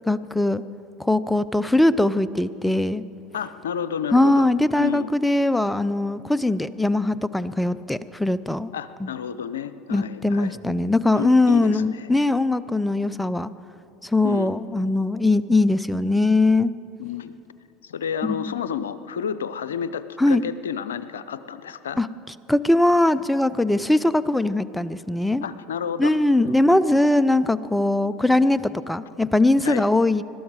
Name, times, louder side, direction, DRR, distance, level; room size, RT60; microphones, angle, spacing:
voice 1, 0.1-0.6 1.0-3.0 4.1-8.7 9.0-9.1 9.9-13.5 14.0-16.7 18.2-18.5 20.2-20.4 22.0-22.1 22.5-25.4 26.0-30.2, left 2 dB, 5° left, 15 dB, 0.5 m, -21 dB
voice 2, 3.3-4.5 4.8-5.1 8.7-10.6 11.2-12.1 14.2-14.5 17.0-17.4 17.8-22.0 25.4-26.2 26.4-26.8 29.6-29.8, left 8 dB, 85° left, 13 dB, 0.6 m, -31 dB
21.5 x 12.5 x 4.8 m, 2.7 s
hypercardioid pair, 80°, 0 cm